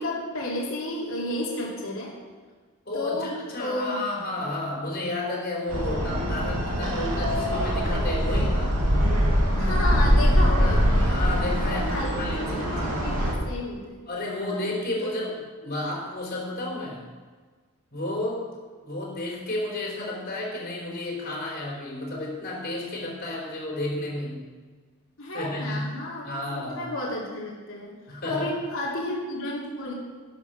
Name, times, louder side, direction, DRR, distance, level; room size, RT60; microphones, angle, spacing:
voice 1, 0.0-2.2 2.9-4.0 9.5-11.1 11.6-14.0 14.5-14.7 15.0-15.1 25.2-27.9 28.2-29.9, left 1 dB, 65° left, -5 dB, 3.3 m, -32 dB
voice 2, 2.9-8.7 10.7-13.1 14.1-15.3 15.6-17.0 17.9-18.5 18.8-24.4 25.3-25.9 26.3-26.9 28.1-28.5, left 2 dB, 45° left, -3 dB, 4.1 m, -32 dB
sound 1, 5.7-13.3, equal, 85° right, 3.0 m, -23 dB
12.0 x 10.0 x 6.0 m, 1.4 s
head